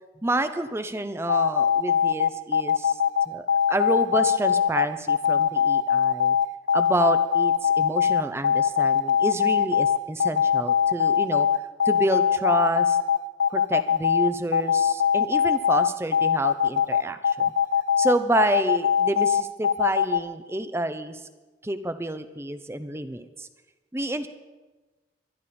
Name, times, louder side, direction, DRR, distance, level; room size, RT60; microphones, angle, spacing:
voice 1, 0.2-3.0 3.3-6.4 6.7-11.5 11.8-13.0 13.5-17.5 18.0-21.2 21.6-23.5 23.9-24.3, right 1 dB, 15° right, 11 dB, 0.7 m, -28 dB
sound 1, 1.3-20.2, left 8 dB, 70° left, 0.5 m, -21 dB
23.5 x 11.5 x 4.3 m, 1.2 s
head